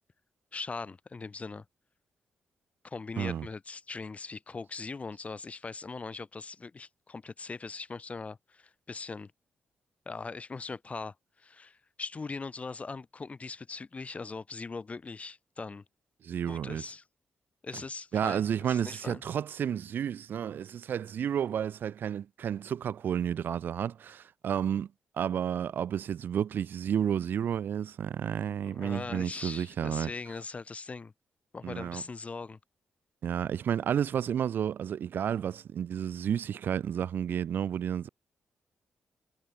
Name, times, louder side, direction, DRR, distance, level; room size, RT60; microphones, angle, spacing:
voice 1, 0.5-1.6 2.8-9.3 10.1-15.8 16.5-17.0 17.6-19.2 28.6-31.1 31.5-32.6, left 4 dB, 40° left, 2.6 m, -40 dB
voice 2, 3.2-3.5 16.2-16.9 18.1-24.9 25.2-30.1 31.6-32.0 33.2-38.1, right 9 dB, 70° right, 1.0 m, -31 dB
supercardioid pair, 55°, 4 cm